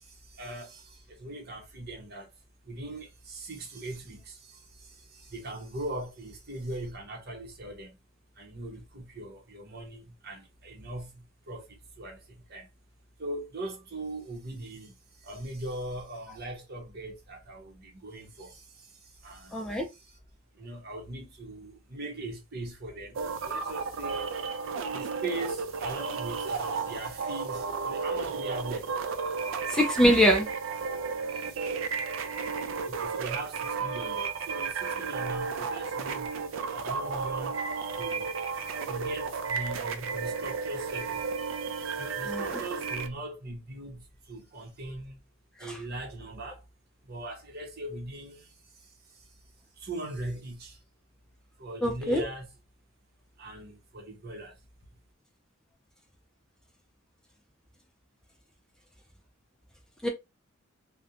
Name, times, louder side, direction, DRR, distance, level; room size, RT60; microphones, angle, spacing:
voice 1, 0.0-2.3 2.6-8.0 8.4-12.7 13.2-20.2 20.5-24.3 24.9-28.9 30.7-30.8 31.3-31.9 32.9-36.3 36.7-37.6 37.9-38.3 38.8-41.4 41.8-45.2 45.6-46.6 47.0-49.4 49.8-50.8 51.6-52.5 53.4-54.6, right 1 dB, 50° right, 0.8 m, -40 dB
voice 2, 19.5-19.9 29.7-30.5 42.3-42.6 45.6-45.7 51.8-52.2 60.0-60.1, equal, 5° left, 0.3 m, -23 dB
sound 1, 23.1-43.1, right 5 dB, 65° right, 0.4 m, -33 dB
2.4 x 2.1 x 2.7 m
head